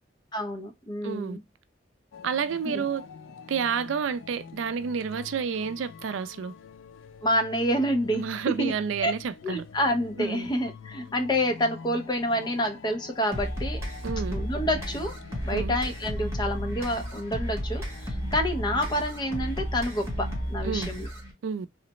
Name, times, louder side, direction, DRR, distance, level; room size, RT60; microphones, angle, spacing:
voice 1, 0.3-1.4 2.7-2.8 7.2-8.3 8.6-8.8 9.0-9.1 9.4-13.8 14.3-15.1 15.4-21.1, equal, 25° left, 0.5 m, -28 dB
voice 2, 1.0-1.4 2.2-3.1 3.5-6.5 8.1-9.6 10.2-10.5 14.0-14.4 15.5-15.7 20.6-20.9 21.4-21.7, right 6 dB, 80° right, 0.4 m, -30 dB
sound 1, 2.1-20.9, left 6 dB, 90° left, 0.4 m, -47 dB
sound 2, 13.3-21.3, equal, 15° right, 0.9 m, -33 dB
3.2 x 2.0 x 2.8 m
head